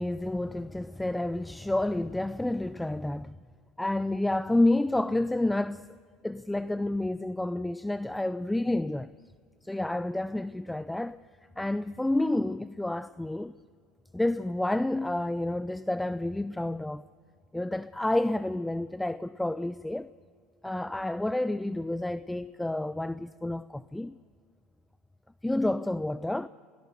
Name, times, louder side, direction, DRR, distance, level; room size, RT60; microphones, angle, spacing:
voice 1, 0.0-3.4 3.8-5.9 6.2-9.2 9.6-11.2 11.6-13.5 14.1-17.1 17.5-20.1 20.6-24.2 25.4-26.5, left 1 dB, 5° left, 0.5 m, -29 dB
28.5 x 18.0 x 6.8 m
supercardioid pair, 90°, 0 cm